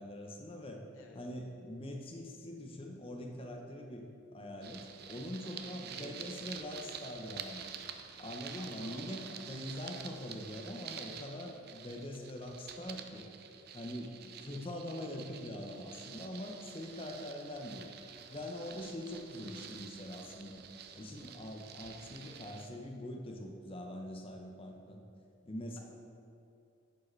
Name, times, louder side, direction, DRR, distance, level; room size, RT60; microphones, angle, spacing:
voice 1, 0.0-0.8 1.1-7.7 8.2-13.3 13.7-17.9 18.3-20.6 20.9-25.0 25.4-25.8, left 1 dB, 25° left, 2 dB, 0.6 m, -43 dB
sound 1, 4.6-22.7, right 8 dB, 50° right, 0.4 m, -48 dB
voice 2, 5.4-6.3 8.5-9.3, left 3 dB, 75° left, 1 dB, 0.9 m, -55 dB
10.0 x 4.8 x 3.2 m, 2.5 s
head